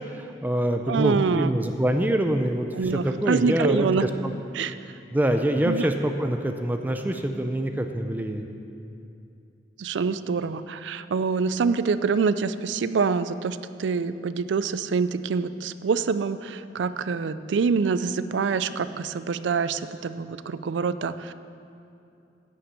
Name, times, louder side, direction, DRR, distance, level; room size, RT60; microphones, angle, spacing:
voice 1, 0.2-2.7 2.9-4.3 5.1-8.5, right 1 dB, 10° right, 5 dB, 0.5 m, -25 dB
voice 2, 0.9-1.5 2.7-4.1 4.5-4.8 5.6-5.9 9.8-21.3, right 5 dB, 90° right, 13 dB, 0.4 m, -26 dB
10.5 x 7.1 x 7.6 m, 2.6 s
head